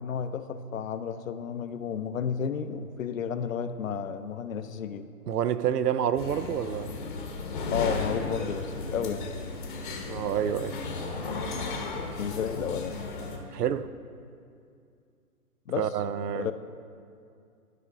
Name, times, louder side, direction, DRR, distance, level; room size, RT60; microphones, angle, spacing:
voice 1, 0.0-5.1 7.7-9.3 12.2-13.0 15.7-15.9 16.3-16.5, left 7 dB, 60° left, 0.5 m, -32 dB
voice 2, 5.3-6.9 10.1-10.8 13.5-13.9 15.8-16.5, right 9 dB, 85° right, 0.5 m, -28 dB
sound 1, 6.2-13.4, left 3 dB, 35° left, 0.9 m, -34 dB
12.0 x 5.0 x 3.7 m
hypercardioid pair, 150°, 46 cm